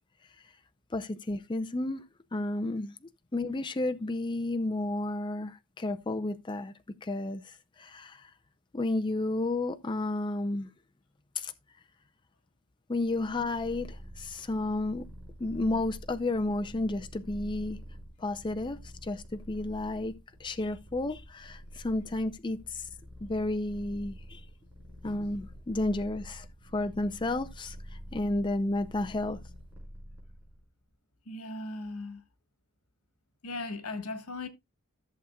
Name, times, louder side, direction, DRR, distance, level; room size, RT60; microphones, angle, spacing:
voice 1, 0.9-2.0 2.3-2.9 3.3-6.7 7.0-8.3 8.7-10.7 11.4-11.5 12.9-15.1 15.4-17.8 18.2-20.1 20.4-22.9 23.2-24.4 25.0-26.5 26.7-29.4, left 2 dB, 20° left, 0.5 m, -32 dB
Purr, 13.0-30.7, equal, 10° right, 4.9 m, -47 dB
voice 2, 31.2-32.2 33.4-34.5, left 2 dB, 90° left, 1.4 m, -37 dB
14.0 x 7.1 x 2.3 m
head